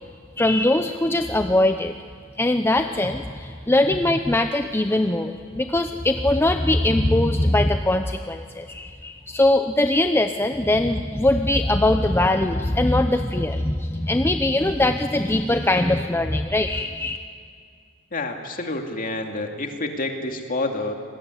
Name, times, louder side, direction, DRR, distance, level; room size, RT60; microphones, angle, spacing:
voice 1, 0.4-1.9 2.4-17.2, left 1 dB, 10° left, 7 dB, 0.6 m, -21 dB
voice 2, 18.1-20.9, left 2 dB, 45° left, 4 dB, 2.5 m, -28 dB
26.0 x 20.5 x 9.7 m, 2.2 s
head